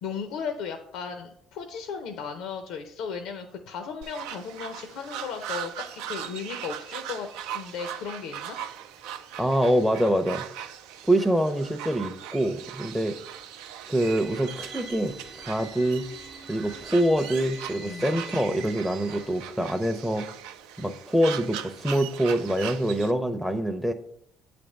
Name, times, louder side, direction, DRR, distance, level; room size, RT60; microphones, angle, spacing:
voice 1, 0.0-8.6 17.8-18.1, left 6 dB, 80° left, 5 dB, 0.6 m, -36 dB
sound 1, 4.0-23.1, right 9 dB, 90° right, 0.4 m, -39 dB
voice 2, 9.4-10.4 11.1-13.2 13.9-16.1 16.5-20.3 20.8-23.9, right 1 dB, ahead, 8 dB, 0.5 m, -25 dB
sound 2, 14.0-19.5, equal, 50° right, 0.6 m, -46 dB
8.3 x 3.4 x 5.2 m, 0.71 s
supercardioid pair, 85°, 0 cm